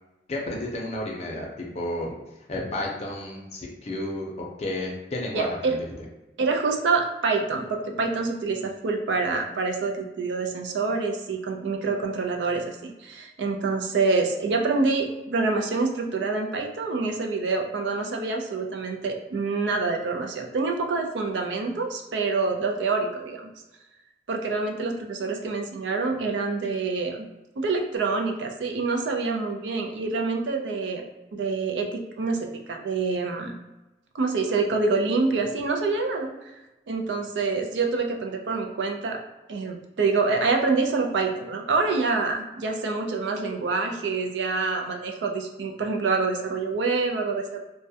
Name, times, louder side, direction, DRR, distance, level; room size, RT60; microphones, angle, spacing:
voice 1, 0.3-2.2 2.5-5.8, left 1 dB, 35° left, -1 dB, 0.5 m, -32 dB
voice 2, 5.3-5.7 6.4-23.5 24.3-27.2 27.6-31.0 31.3-33.6 34.1-36.3 36.9-39.2 39.5-47.6, right 4 dB, 90° right, 3 dB, 0.4 m, -26 dB
2.2 x 2.1 x 2.7 m, 1.0 s
head